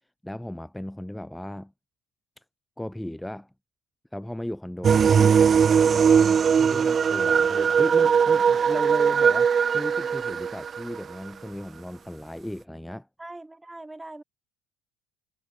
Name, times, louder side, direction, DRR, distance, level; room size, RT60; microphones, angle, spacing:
voice 1, 0.2-1.7 2.4-2.5 2.8-3.5 4.1-5.4 5.8-13.1, left 1 dB, 5° left, 4.1 m, -36 dB
sound 1, 4.8-11.0, right 7 dB, 40° right, 0.6 m, -20 dB
voice 2, 13.2-14.2, right 2 dB, 10° right, 5.8 m, -42 dB
hypercardioid pair, 75°, 0 cm